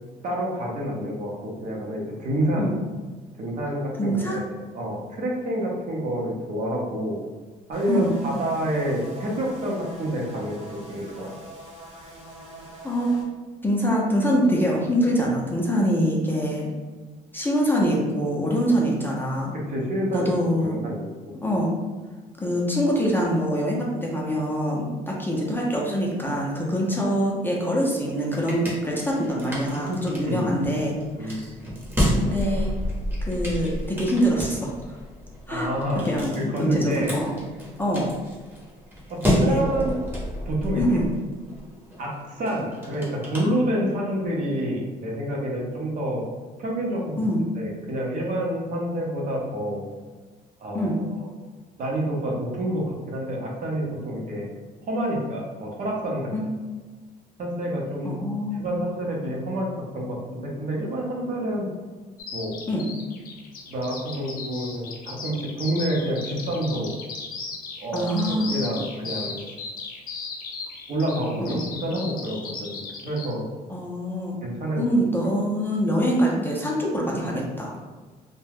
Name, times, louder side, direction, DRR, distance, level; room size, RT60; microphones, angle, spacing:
voice 1, 0.2-2.7 3.4-7.2 7.7-10.6 10.9-11.3 19.5-21.0 29.9-30.0 30.3-30.5 31.2-31.4 35.5-36.1 36.4-37.1 39.1-40.0 40.5-41.0 42.0-46.2 46.6-47.1 47.6-49.8 50.6-51.3 51.8-54.4 54.9-56.3 57.4-58.2 58.6-61.7 62.3-62.5 63.7-66.9 67.8-69.5 70.9-72.7 73.0-73.4 74.4-74.8, right 1 dB, 50° right, -2 dB, 0.7 m, -28 dB
voice 2, 4.0-4.4 7.9-8.1 12.8-13.2 13.6-16.7 17.3-19.5 20.1-20.8 21.3-21.7 22.4-31.5 32.1-32.7 33.3-34.7 35.5-37.4 37.8-38.1 39.3-39.6 40.8-41.1 47.2-47.5 50.7-51.0 56.3-56.4 58.0-58.6 62.7-62.9 67.9-68.5 71.4-71.6 73.7-74.4 74.8-77.8, equal, 10° left, -3 dB, 0.5 m, -24 dB
sound 1, 7.7-13.2, right 1 dB, 35° right, 1.2 m, -44 dB
sound 2, 27.9-44.2, equal, 10° right, 0.8 m, -31 dB
Bird vocalization bird call bird song, 62.2-73.3, left 5 dB, 55° left, 0.6 m, -36 dB
2.3 x 2.1 x 3.3 m, 1.4 s
cardioid pair, 110°, 17 cm